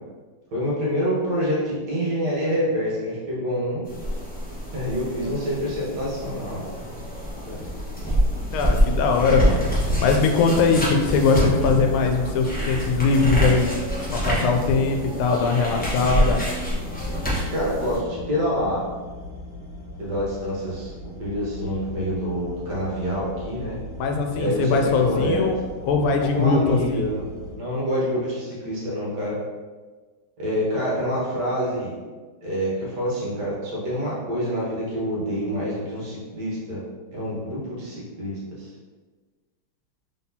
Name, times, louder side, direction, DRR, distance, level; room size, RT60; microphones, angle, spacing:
voice 1, 0.5-3.8 4.7-6.7 7.5-7.6 17.5-18.8 20.0-20.9 21.2-23.8 24.3-25.5 26.2-27.2 27.6-29.4 30.4-31.9 32.4-36.8 37.1-38.7, equal, 55° right, -6 dB, 1.6 m, -26 dB
sound 1, 3.8-18.0, equal, 10° left, 0.4 m, -26 dB
voice 2, 8.5-9.7 10.0-13.7 14.1-16.4 24.0-25.5 25.8-27.1, left 4 dB, 85° left, 3 dB, 1.4 m, -21 dB
sound 2, 11.5-27.5, left 1 dB, 50° left, 1.7 m, -38 dB
4.1 x 3.7 x 2.7 m, 1.4 s
omnidirectional pair, 2.2 m